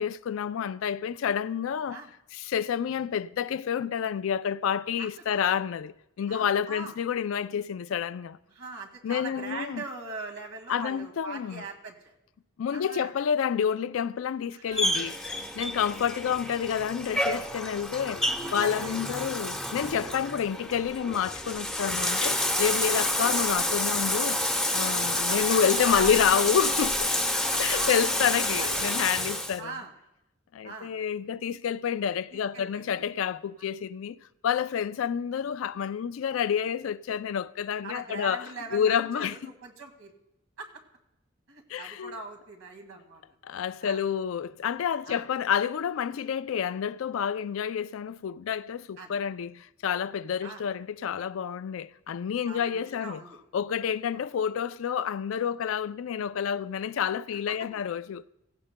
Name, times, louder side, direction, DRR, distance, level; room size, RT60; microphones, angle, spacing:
voice 1, 0.0-2.0 2.3-8.4 9.0-9.8 10.7-11.6 12.6-15.2 15.6-24.4 24.7-27.1 27.6-29.7 30.5-34.2 34.4-38.5 38.7-39.5 41.7-42.2 43.4-53.2 53.5-58.3, left 8 dB, 70° left, 0.3 m, -29 dB
voice 2, 6.3-6.9 8.5-12.1 12.7-13.1 14.5-15.0 16.2-16.4 18.2-19.3 20.3-20.4 22.8-23.1 25.2-26.5 27.3-28.9 29.6-29.9 30.6-30.9 32.3-32.8 37.8-40.1 40.6-40.7 41.5-43.2 43.8-44.0 45.1-45.3 49.0-49.2 50.4-50.6 52.5-53.4 54.1-54.2 57.5-57.6, right 3 dB, 85° right, 2.0 m, -41 dB
Bathtub (filling or washing), 14.7-29.6, left 1 dB, ahead, 0.9 m, -29 dB
16.5 x 16.0 x 2.2 m
head